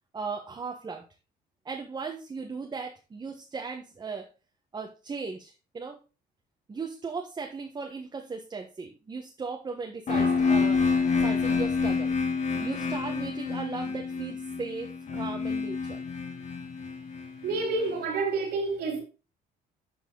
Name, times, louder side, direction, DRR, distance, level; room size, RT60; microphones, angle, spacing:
voice 1, 0.1-1.0 1.6-4.3 4.7-6.0 6.7-10.8 11.2-12.1 12.6-16.0, right 4 dB, 25° right, 1.3 m, -37 dB
sound 1, 10.1-17.9, left 4 dB, 45° left, 2.2 m, -28 dB
voice 2, 17.4-19.0, right 3 dB, 75° right, 3.8 m, -28 dB
11.5 x 4.6 x 3.9 m
cardioid pair, 110°, 17 cm